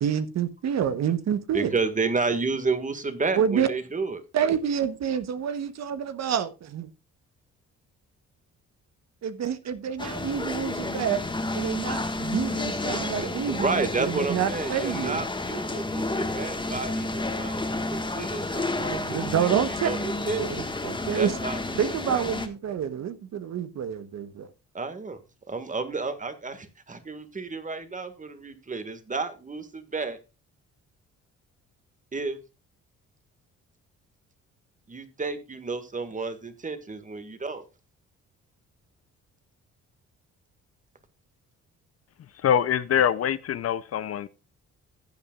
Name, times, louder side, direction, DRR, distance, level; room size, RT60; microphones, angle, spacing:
voice 1, 0.0-1.7 3.4-3.7 4.3-6.9 9.2-11.2 11.5-15.2 18.8-19.9 20.4-21.4 21.8-24.5, right 8 dB, 60° right, 1.1 m, -28 dB
voice 2, 1.5-4.2 12.8-20.7 21.2-21.8 22.1-22.2 24.7-25.2 25.5-30.2 32.1-32.4 34.9-37.6, right 4 dB, 25° right, 1.8 m, -31 dB
sound 1, 10.0-22.5, left 2 dB, 15° left, 1.6 m, -31 dB
voice 3, 42.4-44.3, left 9 dB, 50° left, 0.6 m, -24 dB
15.5 x 8.3 x 2.4 m
cardioid pair, 90°, 30 cm